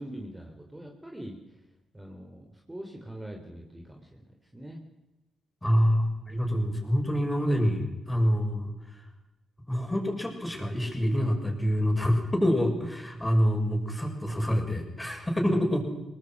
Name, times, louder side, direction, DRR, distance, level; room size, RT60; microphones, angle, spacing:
voice 1, 0.0-1.4 1.9-4.2 4.5-4.8, right 1 dB, 15° right, 2 dB, 3.5 m, -42 dB
voice 2, 5.6-8.7 9.7-15.9, equal, 15° left, 3 dB, 6.7 m, -26 dB
23.5 x 19.5 x 6.2 m, 1.0 s
cardioid pair, 65°, 0 cm